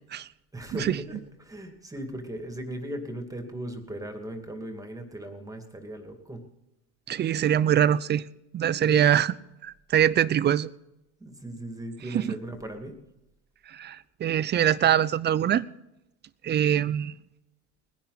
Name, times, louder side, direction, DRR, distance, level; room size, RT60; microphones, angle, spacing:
voice 1, 0.5-6.4 8.9-9.0 11.2-13.0, right 1 dB, 10° right, 2.5 m, -38 dB
voice 2, 7.1-8.2 8.5-9.3 9.6-10.7 12.1-12.4 13.7-15.7 16.4-17.1, right 10 dB, 30° right, 0.5 m, -23 dB
20.0 x 10.5 x 4.1 m
hypercardioid pair, 90°, 37 cm